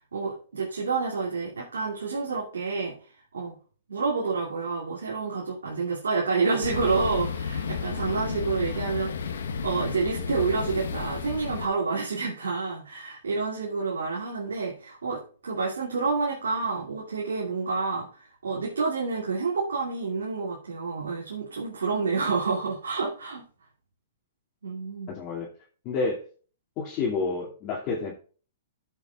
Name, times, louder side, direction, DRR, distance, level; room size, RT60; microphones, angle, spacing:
voice 1, 0.1-3.0 3.3-3.6 3.9-23.5 24.6-25.1, right 4 dB, 85° right, -5 dB, 2.6 m, -29 dB
sound 1, 6.6-11.7, left 6 dB, 75° left, 1.1 m, -32 dB
voice 2, 25.1-25.5 25.8-26.2 26.8-28.1, left 4 dB, 40° left, -5 dB, 2.4 m, -29 dB
15.0 x 7.3 x 2.4 m, 0.39 s
hypercardioid pair, 130°, 0 cm